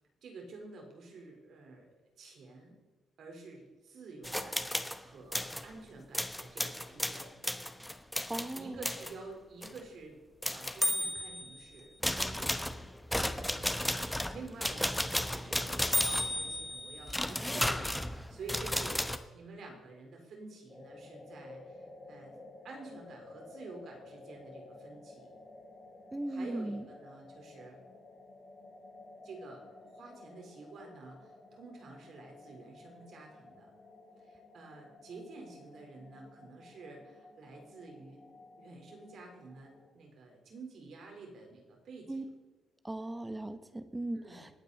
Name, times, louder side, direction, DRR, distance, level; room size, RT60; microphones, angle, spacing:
voice 1, 0.2-1.9 2.2-2.8 3.2-4.7 5.0-7.3 8.5-10.2 10.5-12.8 13.3-13.8 14.1-18.0 18.3-19.0 19.3-22.4 22.6-25.4 26.3-27.8 29.2-33.7 34.2-38.2 38.6-42.3 44.1-44.4, right 3 dB, 65° right, 1 dB, 4.1 m, -50 dB
sound 1, 4.2-5.0 5.3-5.6 6.1-9.1 9.6-9.8 10.4-11.6 12.0-19.2, left 1 dB, 5° left, 0.9 m, -33 dB
voice 2, 8.3-8.9 26.1-26.8 42.1-42.2 42.8-44.5, right 1 dB, 15° right, 11 dB, 1.2 m, -38 dB
sound 2, 20.7-39.9, left 2 dB, 30° left, 4.5 m, -54 dB
19.5 x 9.1 x 4.2 m, 1.3 s
cardioid pair, 90°, 0 cm